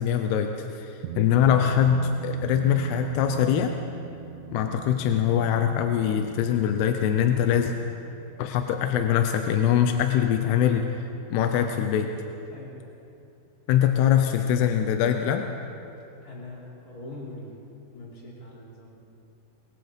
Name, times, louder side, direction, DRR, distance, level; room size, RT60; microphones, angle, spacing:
voice 1, 0.0-3.7 4.5-7.7 8.4-10.9 11.3-12.1 13.7-15.5, left 9 dB, 85° left, 5 dB, 3.0 m, -23 dB
sound 1, 1.0-11.7, right 7 dB, 80° right, 1.9 m, -42 dB
voice 2, 16.2-17.5 17.9-18.9, left 2 dB, 20° left, -5 dB, 5.0 m, -42 dB
23.0 x 22.5 x 5.2 m, 2.8 s
omnidirectional pair, 4.6 m